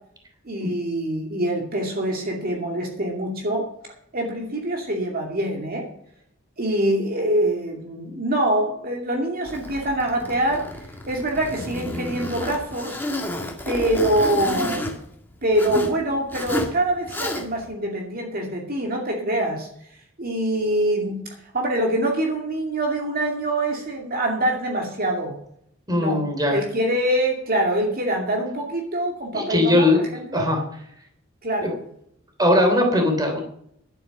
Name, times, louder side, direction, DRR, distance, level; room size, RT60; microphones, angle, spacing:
voice 1, 0.5-3.7 4.1-5.9 6.6-13.0 13.7-14.9 15.4-19.7 20.2-21.2 21.5-25.4 25.9-29.9 30.3-30.4 31.4-31.8, right 1 dB, 45° right, 0 dB, 2.4 m, -24 dB
Zipper (clothing), 9.5-16.0 16.3-16.7 17.1-17.7, left 1 dB, 10° left, 2.0 m, -31 dB
voice 2, 25.9-26.6 29.3-30.0 30.3-30.6 31.6-31.7 32.4-33.4, left 1 dB, 20° right, 3 dB, 3.2 m, -19 dB
11.5 x 8.9 x 6.7 m, 0.68 s
head